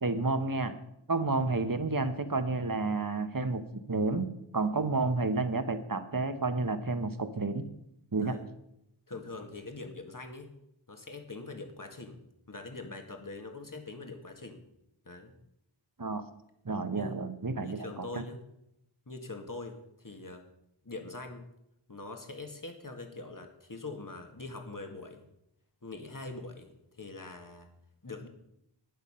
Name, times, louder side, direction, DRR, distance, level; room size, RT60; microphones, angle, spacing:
voice 1, 0.0-0.7 1.1-3.6 3.9-4.3 4.5-7.6 8.1-8.4 16.0-16.2 16.6-18.2, right 3 dB, 40° right, 10 dB, 1.2 m, -30 dB
voice 2, 8.2-8.5 9.1-10.5 10.9-12.2 12.5-14.6 15.1-15.3 16.9-17.2 17.6-18.4 19.1-20.4 20.8-21.5 21.9-25.2 25.8-27.7 28.0-28.3, left 3 dB, 40° left, 5 dB, 1.9 m, -43 dB
11.5 x 9.4 x 5.6 m, 0.81 s
wide cardioid pair, 40°, 49 cm